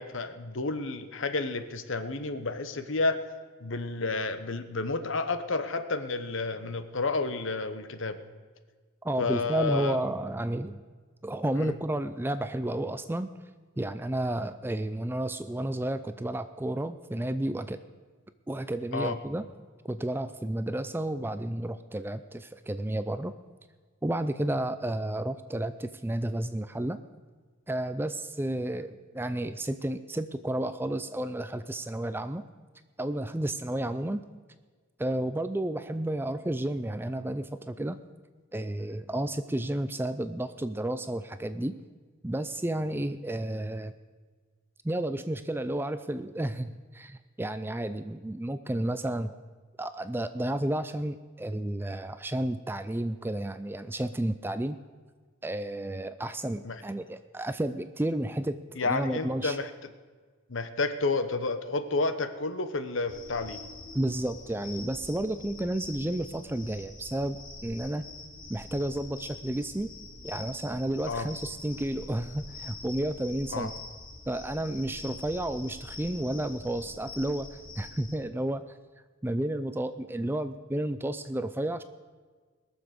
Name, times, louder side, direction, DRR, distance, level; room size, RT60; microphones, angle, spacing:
voice 1, 0.0-3.2 3.6-8.2 9.2-10.0 11.6-11.7 18.9-19.2 56.6-56.8 58.8-59.7 60.5-63.6 71.1-71.3 73.5-73.7, left 3 dB, 60° left, 10 dB, 1.0 m, -30 dB
voice 2, 9.0-10.8 11.2-13.3 13.8-17.8 18.5-19.5 19.8-23.3 24.0-27.0 27.7-32.4 33.0-34.2 35.0-38.0 38.5-41.8 42.2-43.9 44.8-49.3 49.8-54.8 55.4-58.6 58.8-59.6 63.9-68.0 68.5-69.9 70.2-73.7 74.3-78.6 79.2-81.8, right 1 dB, 10° right, 11 dB, 0.3 m, -31 dB
sound 1, 63.1-78.2, left 2 dB, 40° left, 2.2 m, -45 dB
21.0 x 7.1 x 6.6 m, 1.5 s
head